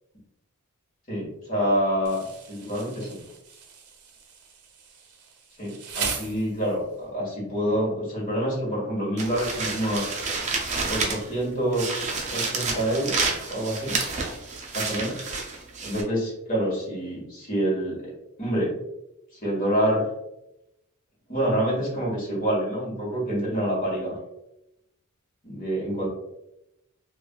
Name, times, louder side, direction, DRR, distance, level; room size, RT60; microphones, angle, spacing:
voice 1, 1.1-2.2 2.5-3.2 5.6-10.1 10.9-13.2 13.5-14.0 14.7-15.2 15.8-18.1 18.4-18.8 19.4-20.1 21.3-24.2 25.4-26.1, right 1 dB, 40° left, -5 dB, 1.3 m, -27 dB
Insect, 2.0-7.0, right 6 dB, 85° right, 0.5 m, -38 dB
sound 1, 9.2-11.4 11.7-16.0, right 4 dB, 30° right, 0.5 m, -29 dB
3.2 x 2.4 x 2.3 m, 0.86 s
head